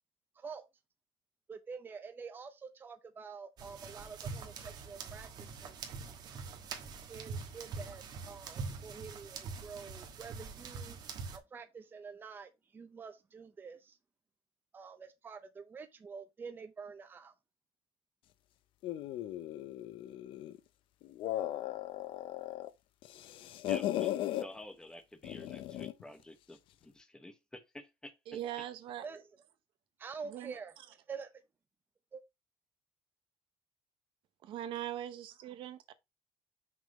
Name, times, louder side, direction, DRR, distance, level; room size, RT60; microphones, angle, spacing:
voice 1, 0.4-0.7 1.5-5.9 7.1-11.0 11.3-14.0 14.7-17.3 29.0-29.2 30.0-30.7 31.1-31.3 32.1-32.2, right 5 dB, 20° right, 0.7 m, -47 dB
sound 1, 3.6-11.4, right 4 dB, 45° right, 1.3 m, -44 dB
sound 2, 18.8-20.6 21.0-22.7 23.0-24.5 25.2-26.0, left 13 dB, 65° left, 0.6 m, -37 dB
voice 2, 23.7-28.2, left 1 dB, 10° left, 0.9 m, -50 dB
voice 3, 28.3-29.1 30.2-30.6 34.4-35.9, right 12 dB, 65° right, 0.9 m, -41 dB
6.2 x 3.8 x 5.0 m
cardioid pair, 165°, 10 cm